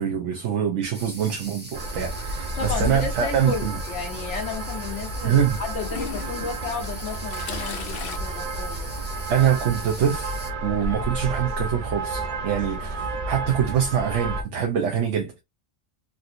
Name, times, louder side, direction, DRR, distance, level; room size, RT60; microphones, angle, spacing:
voice 1, 0.0-3.8 5.2-5.6 9.3-10.3 10.6-15.4, right 8 dB, 80° right, 1.0 m, -24 dB
sound 1, 0.9-10.5, right 1 dB, 10° right, 0.9 m, -42 dB
sound 2, 1.7-14.4, right 2 dB, 50° right, 0.6 m, -31 dB
Toilet flush / Trickle dribble, 2.4-3.3 4.4-4.5 5.8-8.2, left 2 dB, 60° left, 0.7 m, -34 dB
voice 2, 2.6-9.0, left 5 dB, 85° left, 1.0 m, -33 dB
3.6 x 2.6 x 2.5 m
omnidirectional pair, 1.2 m